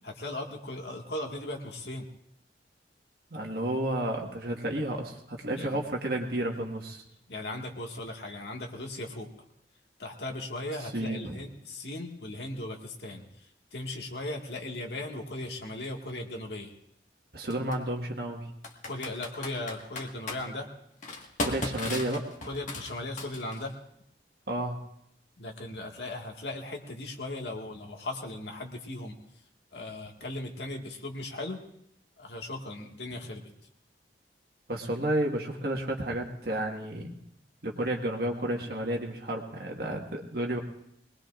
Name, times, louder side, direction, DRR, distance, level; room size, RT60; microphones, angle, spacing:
voice 1, 0.0-2.1 5.6-5.8 7.3-9.3 10.0-16.7 18.8-20.7 22.5-23.7 25.4-29.2 29.7-31.6 32.2-33.4, left 2 dB, 70° left, 2 dB, 1.9 m, -37 dB
voice 2, 3.3-7.0 10.9-11.4 17.3-18.5 21.4-22.3 24.5-24.8 34.7-37.2 37.6-40.6, right 1 dB, 55° right, 0 dB, 1.6 m, -31 dB
Computer keyboard, 15.8-15.9 17.5-17.8 18.6-20.4 21.0-23.7, left 2 dB, 45° left, 1.6 m, -36 dB
23.0 x 20.0 x 2.5 m, 0.75 s
head